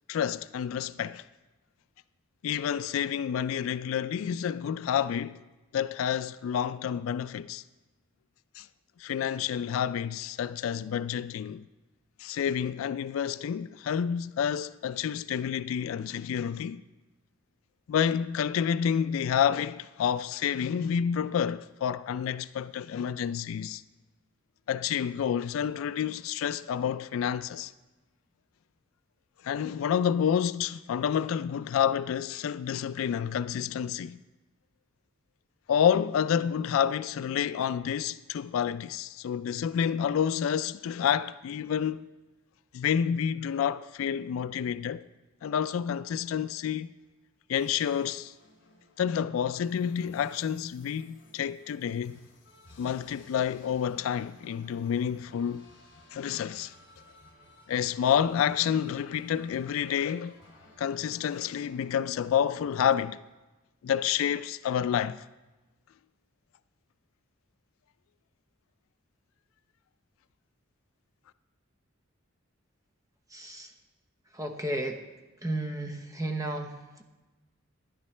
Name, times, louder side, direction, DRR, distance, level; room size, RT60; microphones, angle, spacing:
voice 1, 0.1-1.2 2.4-5.4 5.7-7.6 8.6-8.7 9.0-11.6 12.2-16.8 17.9-23.8 24.7-27.7 29.4-34.2 35.7-42.1 42.7-45.0 45.4-46.9 47.5-48.3 49.0-52.2 52.8-55.6 56.1-56.7 57.7-60.4 60.8-63.2 63.8-65.2, left 8 dB, 75° left, 0.3 m, -29 dB
sound 1, 47.6-62.9, left 2 dB, 60° left, 2.6 m, -57 dB
voice 2, 73.3-73.7 74.3-75.0 75.4-77.0, right 1 dB, 15° right, 0.8 m, -34 dB
11.0 x 10.5 x 3.3 m
head